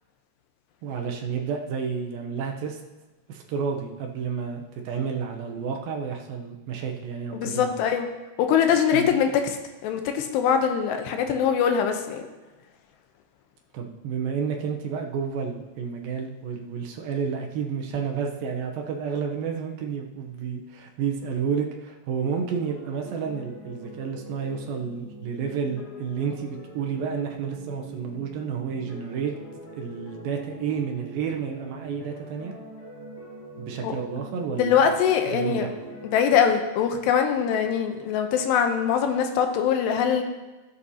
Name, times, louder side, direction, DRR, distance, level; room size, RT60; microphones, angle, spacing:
voice 1, 0.8-2.8 3.3-7.7 8.9-9.1 13.7-29.3 29.8-32.5 33.6-34.9 35.3-35.7, right 6 dB, 75° right, 2 dB, 2.2 m, -30 dB
voice 2, 7.3-8.1 8.4-9.6 9.8-12.2 33.8-33.9 34.6-35.7 36.0-40.2, left 8 dB, 80° left, 5 dB, 2.9 m, -22 dB
sound 1, 22.2-36.5, right 2 dB, 50° left, 4.2 m, -43 dB
16.5 x 8.3 x 2.8 m, 1.2 s
omnidirectional pair, 4.9 m